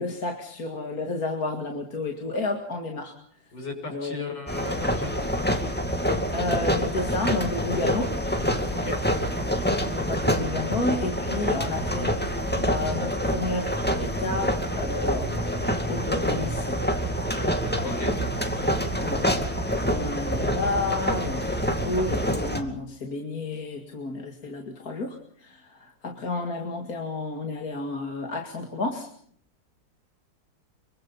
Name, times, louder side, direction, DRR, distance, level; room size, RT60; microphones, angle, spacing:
voice 1, 0.0-3.1 3.9-4.2 6.3-8.1 9.8-12.2 12.6-13.7 14.0-15.4 15.9-16.8 19.0-19.2 19.5-29.1, left 2 dB, 50° left, 3 dB, 2.6 m, -31 dB
voice 2, 3.5-5.3 8.7-9.0 17.8-18.1, left 4 dB, 65° left, 3 dB, 7.2 m, -35 dB
sound 1, 4.5-22.6, equal, 5° left, 2.2 m, -26 dB
25.5 x 24.0 x 5.6 m, 0.62 s
omnidirectional pair, 2.1 m